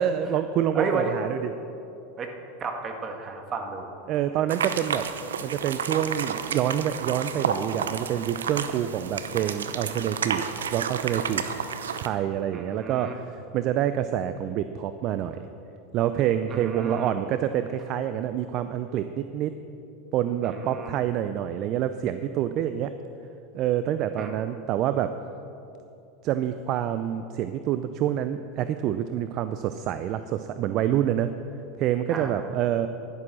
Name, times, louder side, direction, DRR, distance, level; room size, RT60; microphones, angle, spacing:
voice 1, 0.0-1.5 4.1-5.1 5.4-10.4 10.7-11.4 12.0-15.5 15.9-19.5 20.1-22.9 23.5-25.1 26.2-31.3 31.8-32.9, right 10 dB, 50° right, 11 dB, 0.5 m, -27 dB
voice 2, 0.7-1.2 2.2-2.3 2.6-3.9 12.5-13.1 16.5-17.2 20.4-20.9 24.2-24.3 32.1-32.3, right 4 dB, 35° right, 3 dB, 1.9 m, -33 dB
sound 1, 4.5-12.1, right 7 dB, 85° right, 0.7 m, -31 dB
11.5 x 11.0 x 6.3 m, 2.8 s
hypercardioid pair, 95°, 0 cm